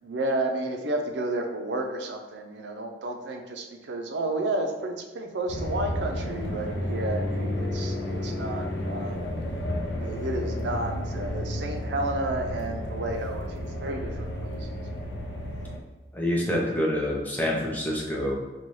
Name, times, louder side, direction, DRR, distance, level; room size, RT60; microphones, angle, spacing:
voice 1, 0.0-9.3 10.0-14.9, right 2 dB, 80° right, 3 dB, 0.5 m, -32 dB
sound 1, 5.5-15.8, left 1 dB, 75° left, 0.5 m, -32 dB
voice 2, 16.1-18.3, equal, 10° left, -2 dB, 0.5 m, -27 dB
4.1 x 2.3 x 3.1 m, 1.2 s
head